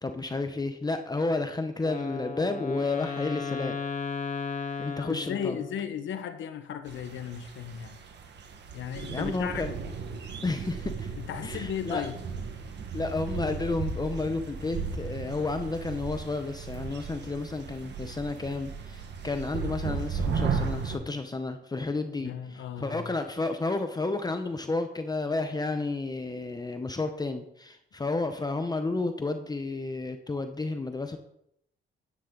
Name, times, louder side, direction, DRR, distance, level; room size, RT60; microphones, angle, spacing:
voice 1, 0.0-3.8 4.8-5.6 9.1-9.8 10.4-11.1 11.4-12.1 12.9-31.2, left 3 dB, 20° left, 7 dB, 0.8 m, -31 dB
Wind instrument woodwind instrument, 1.8-6.0, left 5 dB, 40° left, 1.7 m, -35 dB
voice 2, 5.0-8.0 8.7-9.7 11.2-12.1 22.2-23.0, left 8 dB, 75° left, 9 dB, 1.3 m, -35 dB
sound 1, 6.9-21.0, right 5 dB, 60° right, 1.5 m, -35 dB
10.5 x 9.4 x 3.9 m, 0.75 s
cardioid pair, 90°, 20 cm